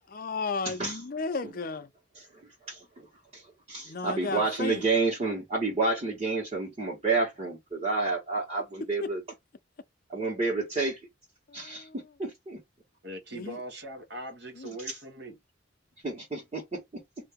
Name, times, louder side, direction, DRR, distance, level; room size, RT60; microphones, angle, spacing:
voice 1, 0.0-1.8 3.8-4.8 11.6-11.9 13.3-13.6 14.6-14.7, left 4 dB, 50° left, 0.5 m, -34 dB
voice 2, 0.6-1.0 1.4-1.5 2.3-3.1 3.3-9.2 10.1-11.0 11.5-12.3 14.9-15.0 16.0-17.0, right 3 dB, 30° right, 1.4 m, -30 dB
voice 3, 13.0-15.4, right 1 dB, 60° right, 1.3 m, -41 dB
2.8 x 2.7 x 3.6 m
head